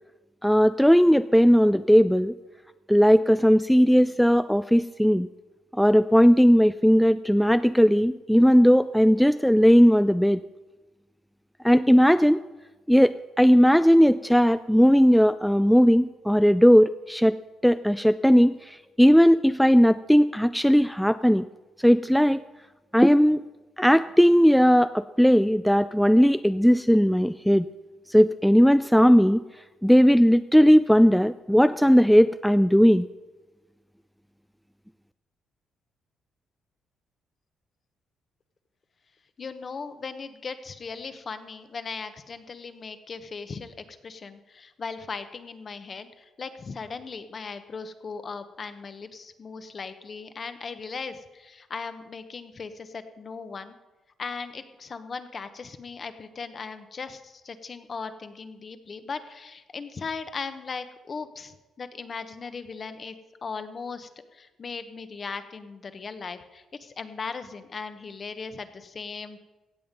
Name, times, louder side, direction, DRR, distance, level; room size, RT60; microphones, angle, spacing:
voice 1, 0.4-2.3 2.9-5.3 5.8-10.4 11.6-12.4 12.9-17.4 17.6-21.4 21.8-22.4 22.9-23.4 23.8-27.7 28.1-29.4 29.8-33.1, equal, ahead, 12 dB, 0.3 m, -18 dB
voice 2, 39.4-53.8 54.2-63.1 63.4-69.4, left 5 dB, 40° left, 10 dB, 1.0 m, -38 dB
16.5 x 7.8 x 5.3 m, 1.1 s
cardioid pair, 90°, 0 cm